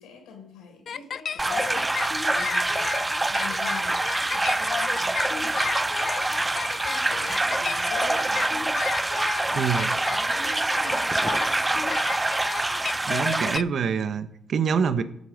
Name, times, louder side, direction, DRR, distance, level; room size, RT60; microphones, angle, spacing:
voice 1, 0.0-2.9 3.2-5.8 6.2-11.9, left 4 dB, 90° left, 3 dB, 4.1 m, -45 dB
sound 1, 0.9-13.6, left 7 dB, 50° left, 0.5 m, -33 dB
sound 2, 1.4-13.6, right 2 dB, 15° right, 0.4 m, -25 dB
voice 2, 9.5-9.9 13.1-15.0, right 6 dB, 55° right, 11 dB, 1.1 m, -25 dB
17.0 x 9.7 x 5.2 m, 0.75 s
cardioid pair, 90°, 0 cm